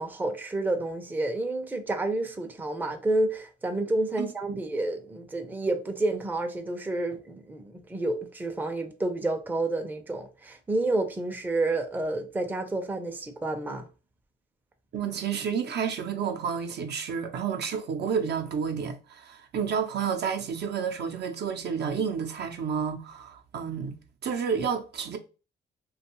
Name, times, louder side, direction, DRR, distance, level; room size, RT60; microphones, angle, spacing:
voice 1, 0.0-13.9, right 2 dB, 10° right, 0.5 m, -29 dB
voice 2, 14.9-23.9 24.2-25.2, right 6 dB, 60° right, 0.5 m, -30 dB
2.6 x 2.2 x 2.9 m
cardioid pair, 90°, 20 cm